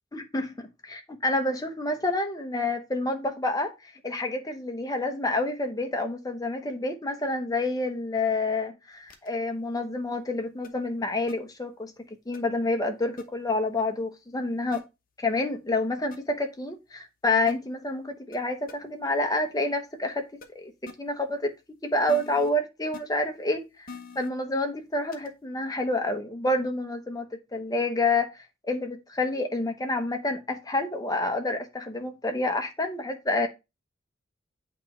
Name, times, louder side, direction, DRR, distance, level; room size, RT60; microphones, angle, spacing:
voice 1, 0.1-11.9 12.3-14.8 15.2-20.2 20.5-21.5 21.8-23.9 24.2-28.3 28.6-33.5, left 2 dB, 20° left, 0.8 m, -28 dB
sound 1, 9.1-9.3 10.6-10.7 11.3-11.4 12.3-12.4 13.2-13.3 14.7-14.8 16.1-16.2 17.5-17.6 18.3-18.4 18.7-18.8 20.4-20.5 20.9-21.0 22.1-22.5 22.9-23.0 23.9-24.3 25.1-25.3, left 4 dB, 45° left, 0.9 m, -42 dB
8.4 x 3.0 x 4.3 m
head